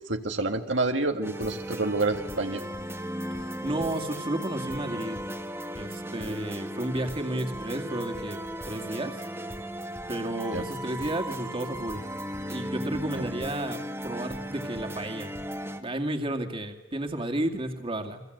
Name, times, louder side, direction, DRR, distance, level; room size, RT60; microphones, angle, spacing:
voice 1, 0.1-2.6 10.5-10.6 13.2-13.3, right 2 dB, 80° right, 4 dB, 1.9 m, -28 dB
enigmatic adventure, 1.2-15.8, equal, 15° right, 1.7 m, -36 dB
voice 2, 3.6-5.2 5.8-8.4 8.6-9.1 10.1-12.0 12.5-15.3 15.8-18.2, right 1 dB, 30° right, 4 dB, 2.3 m, -32 dB
29.5 x 23.5 x 8.0 m, 1.0 s
head